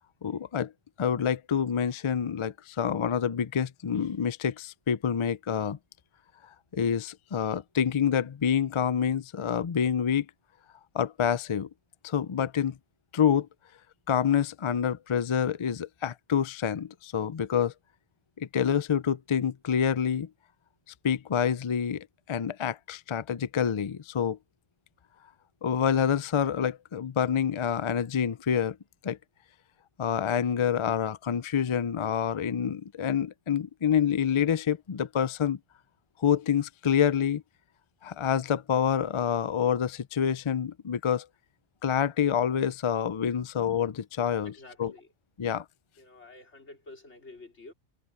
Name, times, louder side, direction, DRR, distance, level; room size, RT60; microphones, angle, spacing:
voice 1, 0.2-0.7 1.0-5.8 6.7-10.3 10.9-11.7 12.0-12.8 13.1-13.5 14.1-17.7 18.4-20.3 21.0-24.4 25.6-28.8 29.0-29.2 30.0-35.6 36.2-37.4 38.0-41.3 41.8-44.5 44.8-44.9 45.4-45.6, left 8 dB, 45° left, 0.4 m, -27 dB
voice 2, 44.4-45.1 46.0-47.7, left 2 dB, 70° left, 4.2 m, -49 dB
omnidirectional pair, 1.2 m